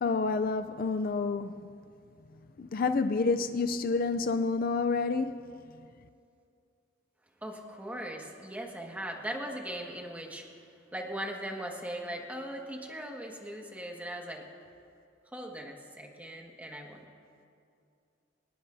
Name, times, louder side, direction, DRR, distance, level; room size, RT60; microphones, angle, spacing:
voice 1, 0.0-1.7 2.6-5.5, left 4 dB, 50° left, 0.4 m, -29 dB
voice 2, 7.4-10.5 10.9-14.5 15.3-17.0, right 1 dB, 10° right, 1.7 m, -39 dB
24.5 x 19.5 x 2.7 m
head